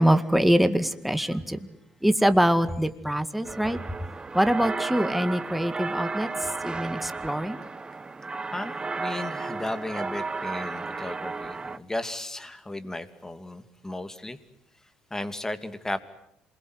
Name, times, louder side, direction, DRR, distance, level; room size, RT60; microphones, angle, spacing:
voice 1, 0.0-1.7 2.0-3.8 4.3-6.3 6.6-7.6, equal, ahead, 2.1 m, -24 dB
sound 1, 3.4-11.8, right 3 dB, 25° right, 1.3 m, -33 dB
voice 2, 8.5-14.4 15.1-16.0, left 1 dB, 15° left, 2.6 m, -35 dB
27.5 x 22.0 x 9.5 m
hypercardioid pair, 65°, 4 cm